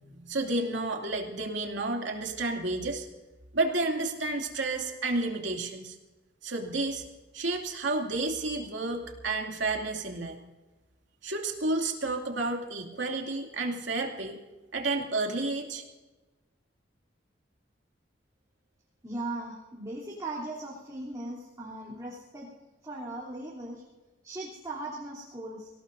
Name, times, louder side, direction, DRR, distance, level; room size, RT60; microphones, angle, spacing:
voice 1, 0.1-3.1 3.5-6.0 6.4-7.0 7.3-10.4 11.2-14.4 14.7-15.8, right 2 dB, 75° right, 1 dB, 2.6 m, -31 dB
voice 2, 19.0-22.5 22.8-23.8 24.2-25.7, right 2 dB, 20° right, -7 dB, 3.3 m, -38 dB
25.5 x 17.0 x 2.7 m, 1.2 s
head